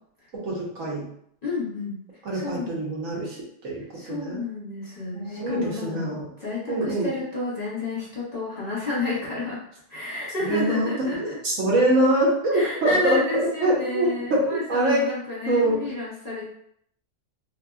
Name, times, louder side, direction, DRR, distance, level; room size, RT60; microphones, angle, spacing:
voice 1, 0.4-1.1 2.2-4.4 5.1-6.3 6.7-7.1 10.5-10.9 11.2-15.0 15.5-15.8, right 1 dB, 85° right, -3 dB, 1.2 m, -24 dB
voice 2, 1.4-2.0 2.3-2.8 3.9-9.6 9.9-11.4 12.5-16.4, left 3 dB, 35° left, -8 dB, 1.2 m, -31 dB
2.9 x 2.8 x 2.2 m, 0.69 s
omnidirectional pair, 1.3 m